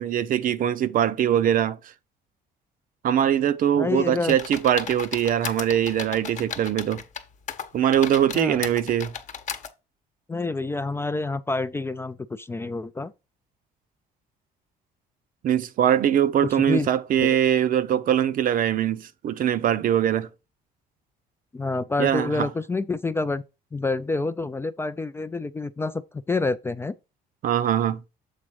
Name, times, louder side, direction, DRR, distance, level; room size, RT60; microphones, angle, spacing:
voice 1, 0.0-1.8 3.0-7.0 7.7-9.1 15.4-20.3 22.0-22.5 27.4-28.0, right 10 dB, 55° right, 0.7 m, -22 dB
voice 2, 3.7-4.4 8.3-8.7 10.3-13.1 16.4-16.9 17.2-17.4 21.5-23.4 23.7-27.0, left 3 dB, 15° left, 0.3 m, -28 dB
sound 1, 4.3-7.2 7.5-9.7, left 7 dB, 45° left, 0.9 m, -35 dB
7.4 x 3.8 x 4.7 m
cardioid pair, 110°, 17 cm